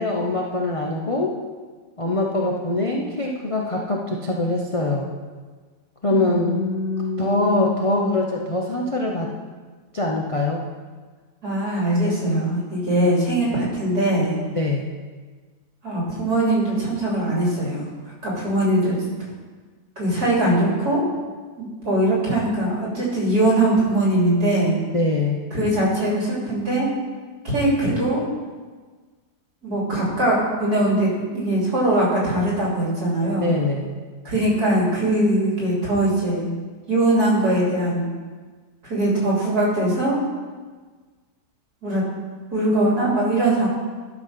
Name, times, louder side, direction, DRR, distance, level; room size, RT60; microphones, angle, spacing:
voice 1, 0.0-1.4 2.0-5.1 6.0-6.6 7.2-9.3 9.9-10.6 14.5-14.9 24.9-25.4 33.4-34.0, left 2 dB, 35° left, -1 dB, 0.5 m, -23 dB
voice 2, 6.1-8.1 11.4-14.4 15.8-17.9 18.2-19.0 20.0-21.0 21.6-24.8 25.5-26.9 27.4-28.2 29.6-33.5 34.2-36.5 36.9-38.1 38.8-40.2 41.8-42.0 42.5-43.7, right 1 dB, 65° right, -5 dB, 3.8 m, -21 dB
11.5 x 6.2 x 5.7 m, 1.4 s
omnidirectional pair, 1.8 m